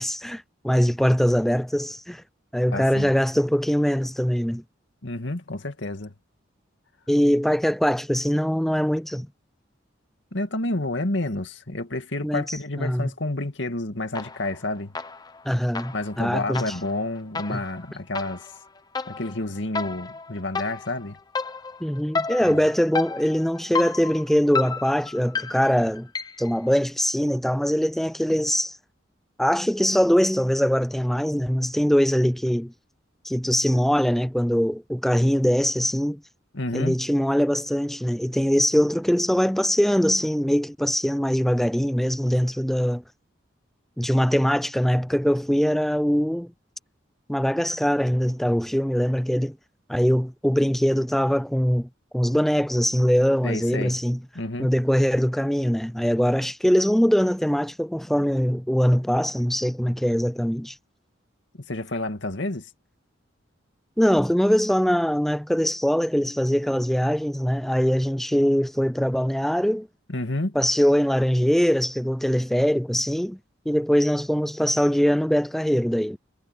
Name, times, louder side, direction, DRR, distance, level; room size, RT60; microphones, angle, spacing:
voice 1, 0.0-2.2 2.5-4.6 7.1-9.3 12.2-13.1 15.5-16.7 17.5-17.6 21.8-26.1 26.4-28.8 29.4-32.7 33.2-36.2 36.7-43.0 44.0-46.5 47.3-49.6 49.9-51.9 52.1-54.2 54.6-60.8 64.0-69.9 70.6-73.4 73.7-76.2, equal, ahead, 0.3 m, -22 dB
voice 2, 2.7-3.1 5.0-6.1 10.3-15.0 15.9-18.5 19.1-21.2 22.4-22.6 36.5-37.0 53.4-54.0 54.3-54.7 61.7-62.7 70.1-70.6, left 2 dB, 70° left, 2.2 m, -29 dB
sound 1, 14.1-14.6 14.9-26.6, left 4 dB, 20° left, 0.8 m, -32 dB
head